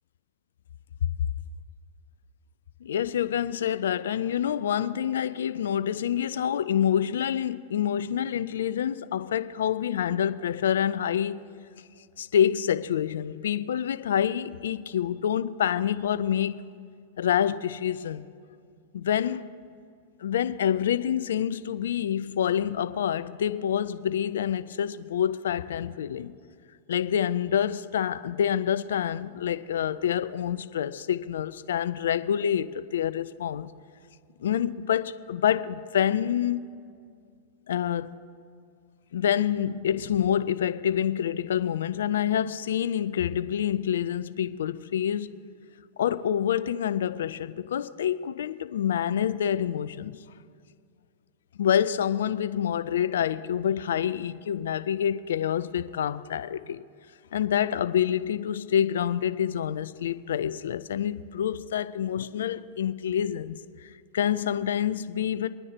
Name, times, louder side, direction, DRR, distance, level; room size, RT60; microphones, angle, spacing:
voice 1, 2.8-11.4 12.2-16.6 17.2-18.3 18.9-19.4 20.2-26.3 26.9-33.7 34.4-36.7 37.7-38.2 39.1-45.3 46.0-50.2 51.6-56.8 57.3-65.5, left 9 dB, 75° left, 0.5 m, -27 dB
24.5 x 9.8 x 2.9 m
hypercardioid pair, 105°, 0 cm